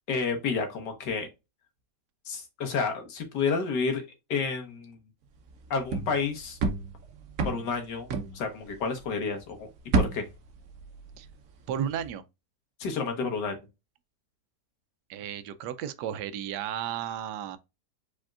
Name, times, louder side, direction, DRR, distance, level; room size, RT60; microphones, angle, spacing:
voice 1, 0.1-1.3 2.3-5.0 5.7-6.6 7.4-8.1 8.3-9.7 9.9-10.3 12.8-13.6, left 5 dB, 85° left, 1.9 m, -30 dB
sound 1, 5.5-9.2 9.5-11.5 11.8-12.1, right 3 dB, 60° right, 1.2 m, -31 dB
voice 2, 11.7-12.2 15.1-17.6, right 9 dB, 80° right, 1.2 m, -33 dB
4.9 x 4.4 x 2.4 m
omnidirectional pair, 1.8 m